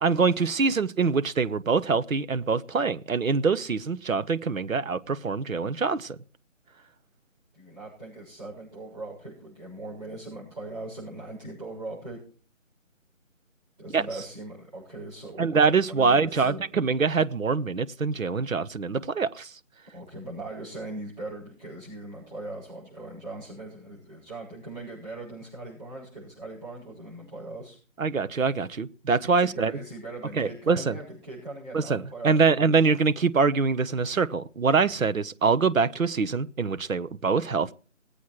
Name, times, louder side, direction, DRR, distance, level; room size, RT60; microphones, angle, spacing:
voice 1, 0.0-6.2 13.9-14.0 15.4-19.5 28.0-29.7 30.4-31.0 31.7-37.7, right 5 dB, 90° right, 1.1 m, -24 dB
voice 2, 7.5-12.2 13.8-16.6 19.9-27.8 29.3-32.6, right 2 dB, 35° right, 7.0 m, -40 dB
20.5 x 8.4 x 4.7 m
figure-of-eight pair, 180°, 39 cm